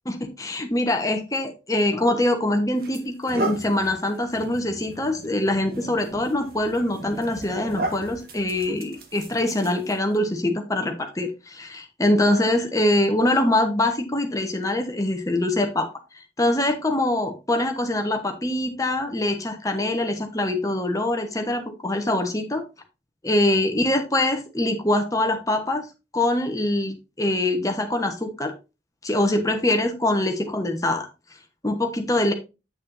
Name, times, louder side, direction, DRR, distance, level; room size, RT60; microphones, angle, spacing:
voice 1, 0.0-15.9 16.4-22.6 23.2-25.9 26.1-28.5 29.0-31.1 31.6-32.3, left 1 dB, 20° left, 5 dB, 1.1 m, -24 dB
sound 1, 2.0-2.2 2.8-10.2, right 2 dB, 55° right, 1.4 m, -35 dB
8.7 x 6.5 x 2.7 m, 0.27 s
head